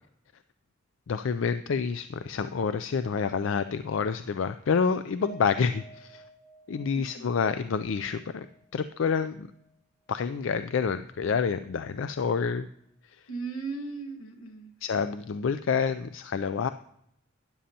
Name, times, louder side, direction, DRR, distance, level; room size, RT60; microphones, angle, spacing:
voice 1, 1.1-6.2 6.7-8.5 8.7-9.5 10.1-12.7 13.1-13.2 14.8-16.7, left 6 dB, 70° left, 11 dB, 0.4 m, -28 dB
Piano, 5.2-9.7 10.1-10.2 10.6-10.8, right 4 dB, ahead, 0.9 m, -53 dB
voice 2, 7.0-7.3 13.3-14.7, right 4 dB, 85° left, 3 dB, 1.4 m, -37 dB
12.5 x 10.0 x 2.8 m, 0.75 s
head